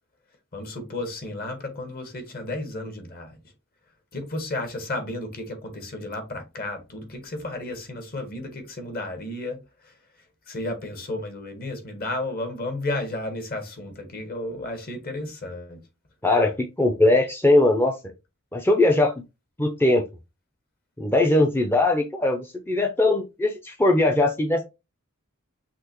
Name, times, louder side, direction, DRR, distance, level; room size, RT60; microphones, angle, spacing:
voice 1, 0.5-3.4 4.1-9.9 10.5-15.8, left 2 dB, 45° left, 1.3 m, -33 dB
voice 2, 16.2-18.0 18.5-19.1 19.6-20.1 21.0-24.6, left 2 dB, 10° left, 0.5 m, -20 dB
5.9 x 2.9 x 3.0 m
head